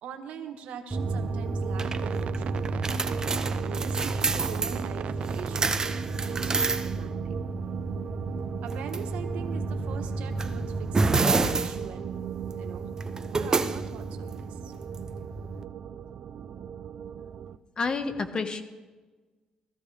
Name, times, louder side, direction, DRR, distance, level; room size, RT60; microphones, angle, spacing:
voice 1, 0.0-2.9 3.6-5.9 6.2-7.4 8.6-12.1 12.6-12.9 13.3-14.7, right 7 dB, 85° right, 6 dB, 1.3 m, -42 dB
sound 1, 0.9-15.6, right 3 dB, 30° right, 0.8 m, -30 dB
sound 2, 0.9-17.6, right 8 dB, 60° right, 0.5 m, -36 dB
voice 2, 17.8-18.6, left 4 dB, 40° left, 8 dB, 1.4 m, -29 dB
17.5 x 14.0 x 3.4 m, 1.3 s
cardioid pair, 90°, 2 cm